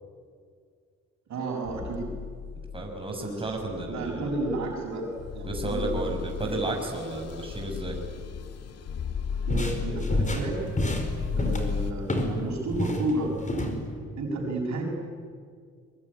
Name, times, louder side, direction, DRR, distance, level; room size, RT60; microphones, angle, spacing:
voice 1, 1.3-2.1 3.1-5.1 5.3-6.0 6.4-6.7 9.4-10.7 11.4-13.3 14.2-14.9, right 2 dB, 65° right, -4 dB, 6.5 m, -32 dB
sound 1, 1.6-11.9, left 6 dB, 55° left, 1.9 m, -35 dB
voice 2, 2.7-4.3 5.5-8.0, right 2 dB, 20° right, 1 dB, 5.8 m, -32 dB
sound 2, 9.3-12.4 12.7-13.8, left 1 dB, 25° left, 4.8 m, -28 dB
23.5 x 23.0 x 9.9 m, 2.1 s
cardioid pair, 90°, 30 cm